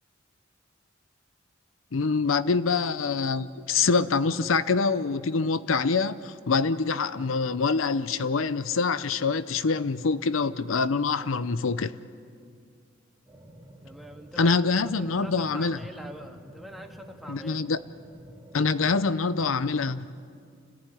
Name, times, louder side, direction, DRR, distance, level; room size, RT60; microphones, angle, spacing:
voice 1, 1.9-12.0 14.4-15.8 17.3-17.8 18.5-20.1, left 4 dB, 85° left, 0.6 m, -25 dB
sound 1, 13.3-19.6, right 1 dB, 15° right, 2.2 m, -50 dB
voice 2, 13.8-17.6, equal, ahead, 1.7 m, -44 dB
29.5 x 14.5 x 9.9 m
head